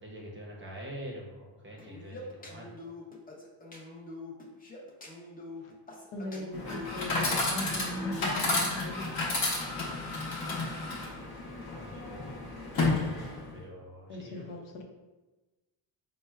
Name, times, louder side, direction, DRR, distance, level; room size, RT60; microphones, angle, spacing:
voice 1, 0.0-2.7 11.7-12.4 13.5-14.4, equal, 25° right, -2 dB, 0.6 m, -45 dB
sound 1, 1.8-8.6, left 2 dB, 20° left, 0.5 m, -45 dB
voice 2, 6.1-9.1 14.1-14.8, left 1 dB, 90° left, 1 dB, 0.7 m, -39 dB
Chatter / Coin (dropping), 6.5-13.6, left 2 dB, 50° left, 0.9 m, -32 dB
4.3 x 2.1 x 2.2 m, 1.2 s
cardioid pair, 105°, 48 cm